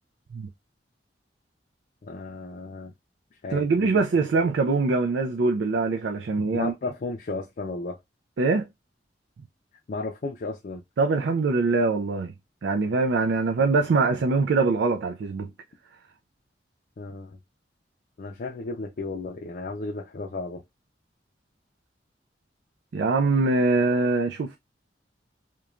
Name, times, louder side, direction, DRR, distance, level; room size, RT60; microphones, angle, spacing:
voice 1, 2.0-2.9 3.4-4.5 6.5-8.0 9.9-10.8 17.0-17.4 18.2-20.6, left 3 dB, 50° left, 0.4 m, -34 dB
voice 2, 3.5-6.7 8.4-8.7 11.0-12.3 12.6-15.5 22.9-24.6, right 3 dB, 80° right, 0.4 m, -23 dB
3.0 x 2.2 x 2.4 m
head